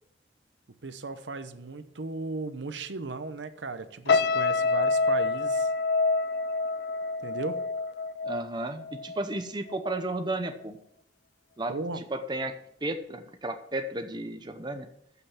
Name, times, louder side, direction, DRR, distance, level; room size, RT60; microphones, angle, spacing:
voice 1, 0.8-5.7 7.2-7.6 11.7-12.0, right 3 dB, 75° right, 11 dB, 0.8 m, -36 dB
sound 1, 4.1-9.4 9.7-10.0, left 3 dB, 60° left, 0.4 m, -27 dB
voice 2, 8.2-10.8 11.6-14.9, right 1 dB, 25° right, 7 dB, 0.7 m, -33 dB
14.0 x 5.6 x 5.8 m, 0.75 s
head